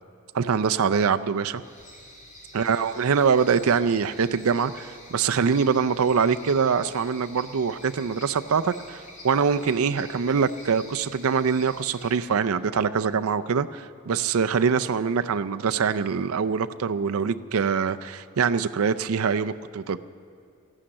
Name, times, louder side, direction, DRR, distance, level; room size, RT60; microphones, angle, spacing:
voice 1, 0.3-1.6 2.5-20.0, right 6 dB, 70° right, 10 dB, 0.5 m, -24 dB
sound 1, 1.6-12.2, left 2 dB, 35° left, 2.5 m, -47 dB
14.0 x 11.5 x 8.7 m, 2.4 s
head